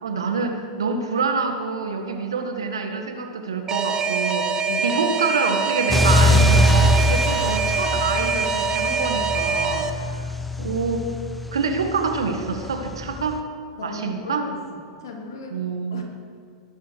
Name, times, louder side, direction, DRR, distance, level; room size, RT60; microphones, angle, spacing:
voice 1, 0.0-10.3 10.6-11.0 11.5-13.4 13.8-14.5 15.5-16.0, right 4 dB, 80° right, 5 dB, 1.8 m, -26 dB
Alarm, 3.7-9.9, right 4 dB, 25° right, 1.0 m, -24 dB
sound 1, 5.9-13.4, left 1 dB, 5° left, 1.1 m, -23 dB
voice 2, 13.8-16.0, left 3 dB, 75° left, 1 dB, 3.2 m, -37 dB
19.5 x 11.5 x 4.7 m, 2.2 s
hypercardioid pair, 95°, 3 cm